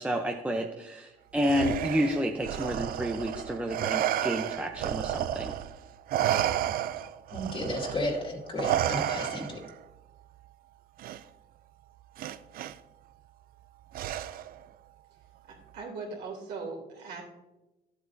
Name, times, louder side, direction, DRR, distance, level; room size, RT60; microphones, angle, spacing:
voice 1, 0.0-5.5, equal, 10° right, 2 dB, 0.7 m, -30 dB
Respiratory sounds, 1.4-5.7 6.1-9.7 11.0-11.2 12.2-12.7 13.9-14.6, right 11 dB, 60° right, 0.4 m, -31 dB
voice 2, 7.0-9.6, left 1 dB, 30° left, 0 dB, 2.2 m, -33 dB
voice 3, 15.5-17.2, right 4 dB, 75° right, -1 dB, 2.9 m, -39 dB
11.5 x 8.0 x 2.7 m, 1.0 s
cardioid pair, 110°, 17 cm